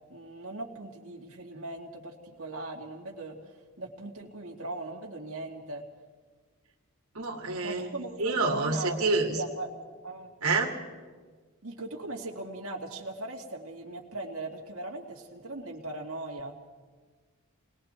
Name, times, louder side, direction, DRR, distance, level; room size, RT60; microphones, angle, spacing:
voice 1, 0.1-5.8 7.6-9.1 9.3-9.7 10.0-10.3 11.6-16.5, right 2 dB, 70° right, -2 dB, 2.4 m, -39 dB
voice 2, 7.1-7.9 8.2-9.4 10.4-10.7, right 3 dB, 90° right, -1 dB, 2.4 m, -27 dB
29.5 x 20.5 x 4.5 m, 1.5 s
head